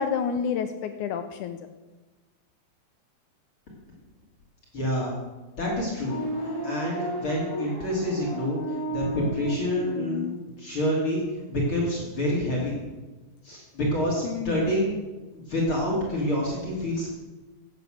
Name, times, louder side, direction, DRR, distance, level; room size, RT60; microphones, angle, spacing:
voice 1, 0.0-1.7 14.2-14.7, left 6 dB, 85° left, 8 dB, 1.8 m, -29 dB
voice 2, 4.7-5.1 5.5-12.8 13.4-14.9 15.5-17.1, equal, 35° left, -4 dB, 3.3 m, -27 dB
sound 1, 5.9-10.3, equal, 5° left, 2.7 m, -33 dB
14.0 x 9.6 x 6.5 m, 1.2 s
omnidirectional pair, 4.2 m